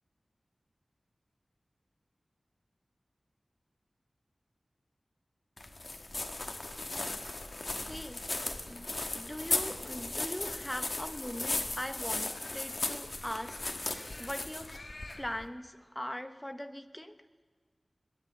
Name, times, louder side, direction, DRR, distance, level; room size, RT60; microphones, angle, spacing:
sound 1, 5.6-15.5, left 2 dB, 50° left, 1.2 m, -37 dB
voice 1, 7.8-14.8 15.2-17.2, equal, 10° left, 9 dB, 0.9 m, -41 dB
20.0 x 7.8 x 8.2 m, 1.5 s
wide cardioid pair, 70°, 0 cm